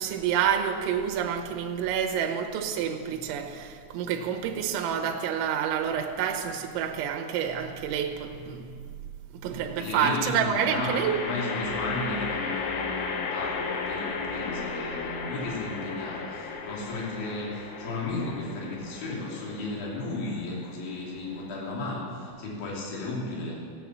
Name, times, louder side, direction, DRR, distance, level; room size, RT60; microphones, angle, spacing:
voice 1, 0.0-8.7 9.3-11.2, right 8 dB, 75° right, 4 dB, 3.2 m, -28 dB
sound 1, 7.3-7.8 10.4-21.7, left 4 dB, 70° left, 2.8 m, -35 dB
voice 2, 9.7-23.6, left 2 dB, 50° left, -4 dB, 4.1 m, -34 dB
15.0 x 9.0 x 7.4 m, 2.1 s
omnidirectional pair, 5.7 m